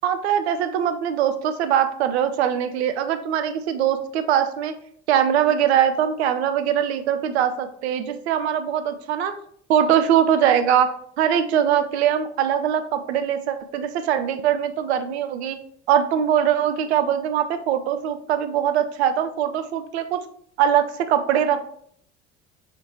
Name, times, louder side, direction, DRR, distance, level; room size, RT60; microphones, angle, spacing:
voice 1, 0.0-4.7 5.1-9.3 9.7-15.6 15.9-20.2 20.6-21.6, right 9 dB, 70° right, 9 dB, 0.5 m, -22 dB
4.8 x 3.2 x 2.9 m, 0.63 s
figure-of-eight pair, 60°, 34 cm